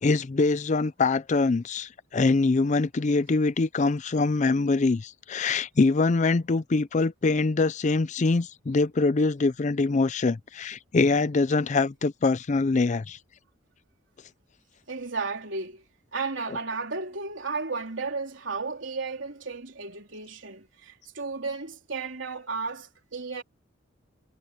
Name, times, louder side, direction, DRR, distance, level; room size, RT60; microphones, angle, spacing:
voice 1, 0.0-13.2, left 3 dB, 35° left, 0.4 m, -24 dB
voice 2, 14.9-15.8 16.1-23.4, right 4 dB, 70° right, 3.5 m, -33 dB
head